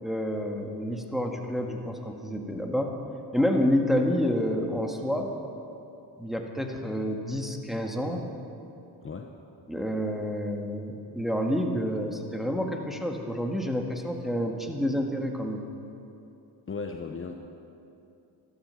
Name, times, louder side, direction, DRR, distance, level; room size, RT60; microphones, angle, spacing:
voice 1, 0.0-2.9 3.3-5.3 6.2-8.2 9.7-15.7, equal, ahead, 2 dB, 1.7 m, -29 dB
voice 2, 16.7-17.4, left 4 dB, 30° left, 4 dB, 0.9 m, -36 dB
13.0 x 13.0 x 6.9 m, 2.7 s
cardioid pair, 85°, 44 cm